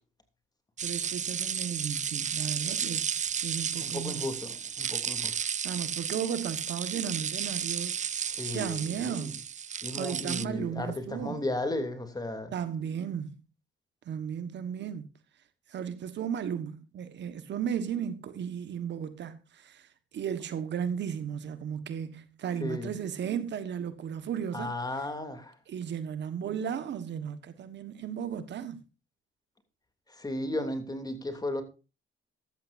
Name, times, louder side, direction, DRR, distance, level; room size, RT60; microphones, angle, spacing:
sound 1, 0.8-10.4, right 8 dB, 35° right, 0.5 m, -33 dB
voice 1, 0.8-4.3 5.6-8.0 8.5-9.4 9.9-11.4 12.5-13.4 14.0-15.1 15.7-19.9 20.1-24.7 25.7-28.8, right 8 dB, 65° right, 1.4 m, -35 dB
voice 2, 3.8-5.3 8.1-9.3 9.8-12.5 22.6-22.9 24.5-25.5 30.1-31.6, left 1 dB, 20° left, 2.9 m, -35 dB
14.0 x 13.0 x 2.6 m
cardioid pair, 90°, 20 cm